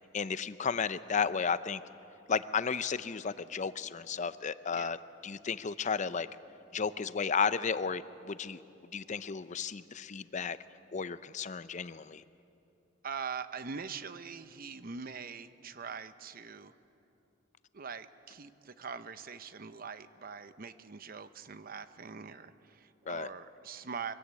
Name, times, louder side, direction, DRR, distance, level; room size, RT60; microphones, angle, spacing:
voice 1, 0.1-1.8 2.3-6.3 6.7-8.6 8.9-10.6 10.9-12.2 23.1-23.3, left 6 dB, 40° left, 14 dB, 0.6 m, -33 dB
voice 2, 13.0-16.7 17.7-24.1, right 5 dB, 50° right, 12 dB, 0.8 m, -43 dB
24.0 x 16.5 x 8.3 m, 2.8 s
head